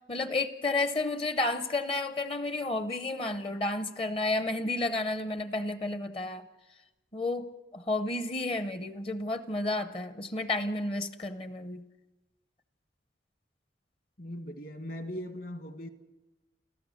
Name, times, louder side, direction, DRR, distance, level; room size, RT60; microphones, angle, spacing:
voice 1, 0.1-6.5 7.1-11.8, left 2 dB, 30° left, 0.7 m, -31 dB
voice 2, 14.2-15.9, equal, 50° left, 1.6 m, -39 dB
29.5 x 14.5 x 6.4 m
head